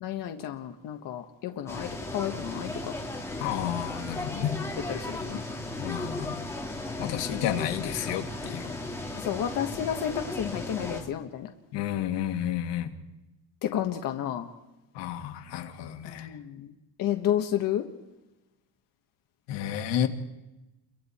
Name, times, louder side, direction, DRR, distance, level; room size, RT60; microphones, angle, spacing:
voice 1, 0.0-2.9 4.9-5.4 7.0-7.3 9.2-11.5 13.6-14.5 16.0-16.7 17.0-17.9, left 10 dB, 50° left, 5 dB, 1.3 m, -31 dB
sound 1, 1.7-11.0, left 2 dB, 5° left, 2.5 m, -36 dB
voice 2, 3.4-4.6 5.8-6.4 7.0-8.8 11.7-12.9 15.0-16.3 19.5-20.1, left 10 dB, 75° left, 6 dB, 1.9 m, -31 dB
29.0 x 23.5 x 4.3 m, 1.0 s
cardioid pair, 180°, 43 cm